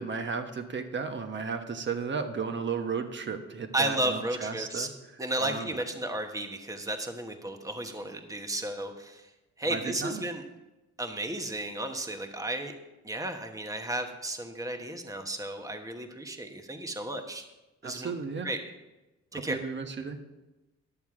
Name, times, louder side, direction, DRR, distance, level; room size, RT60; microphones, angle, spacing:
voice 1, 0.0-4.9 5.4-5.8 9.6-10.2 17.8-18.5 19.3-20.2, right 5 dB, 40° right, 6 dB, 1.2 m, -34 dB
voice 2, 3.7-4.9 5.2-9.3 9.6-10.4 11.0-12.7 13.0-17.4 17.8-18.1 18.4-18.6 19.3-19.6, right 1 dB, 10° right, 5 dB, 1.1 m, -33 dB
11.0 x 7.0 x 4.8 m, 1.1 s
cardioid pair, 90°, 30 cm